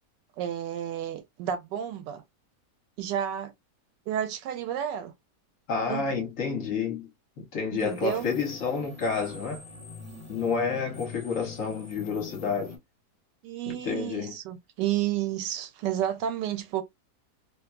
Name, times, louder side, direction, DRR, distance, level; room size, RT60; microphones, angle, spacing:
voice 1, 0.4-2.2 3.0-3.5 4.1-5.1 5.9-6.3 7.7-8.3 13.4-16.8, right 10 dB, 85° right, 1.3 m, -31 dB
voice 2, 5.7-7.1 7.4-9.6 10.3-12.7 13.7-14.4, left 5 dB, 55° left, 1.1 m, -29 dB
sound 1, 7.8-12.8, left 4 dB, 5° left, 1.2 m, -44 dB
2.9 x 2.3 x 2.3 m
omnidirectional pair, 1.9 m